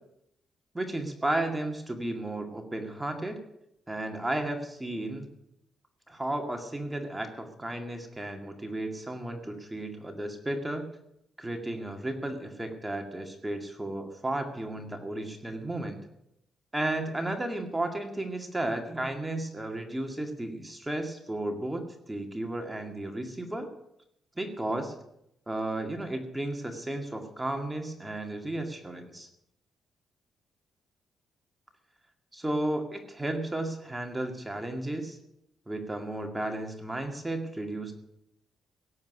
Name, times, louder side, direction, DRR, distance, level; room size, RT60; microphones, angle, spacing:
voice 1, 0.7-3.4 3.9-5.3 6.1-10.9 11.4-16.0 16.7-23.7 24.4-24.9 25.5-29.3 32.3-35.2 35.7-37.9, right 1 dB, 10° right, 3 dB, 2.0 m, -33 dB
17.5 x 7.4 x 9.6 m, 0.81 s
cardioid pair, 130°, 0 cm